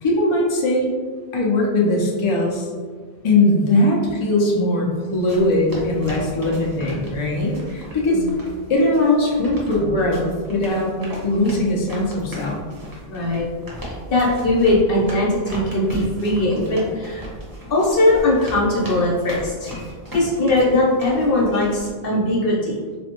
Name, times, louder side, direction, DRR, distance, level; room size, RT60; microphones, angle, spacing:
voice 1, 0.0-0.9 1.3-2.7 3.2-8.2 8.7-10.9 11.2-12.6, left 2 dB, 40° left, -2 dB, 0.4 m, -20 dB
sound 1, 5.1-21.9, equal, 25° right, 0.6 m, -37 dB
voice 2, 13.1-13.5 13.8-17.3 17.7-19.7 20.1-22.8, left 2 dB, 65° left, -4 dB, 1.0 m, -20 dB
4.0 x 2.1 x 2.9 m, 1.5 s
omnidirectional pair, 1.1 m